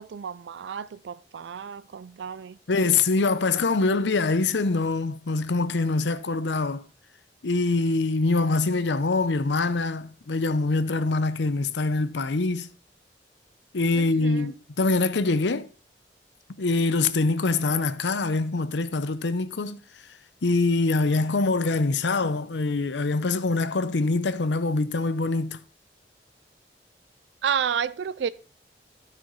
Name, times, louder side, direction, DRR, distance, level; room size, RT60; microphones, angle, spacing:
voice 1, 0.0-2.6 13.9-14.5 27.4-28.3, right 7 dB, 85° right, 0.4 m, -31 dB
voice 2, 2.7-6.8 7.4-12.7 13.7-15.7 16.6-19.8 20.4-25.6, left 3 dB, 85° left, 0.7 m, -24 dB
12.5 x 5.9 x 3.8 m
head